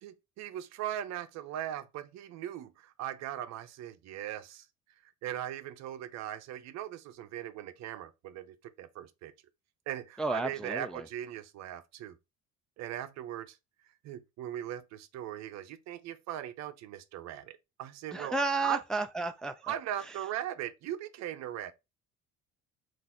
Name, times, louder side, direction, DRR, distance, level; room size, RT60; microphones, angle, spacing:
voice 1, 0.0-4.7 5.2-9.3 9.9-12.2 12.8-13.6 14.0-18.4 18.6-18.8 19.6-21.7, right 11 dB, 65° right, 0.7 m, -39 dB
voice 2, 10.2-11.1 18.1-19.8 20.0-20.2, right 3 dB, ahead, 0.3 m, -32 dB
3.9 x 2.6 x 4.2 m
cardioid pair, 120°, 29 cm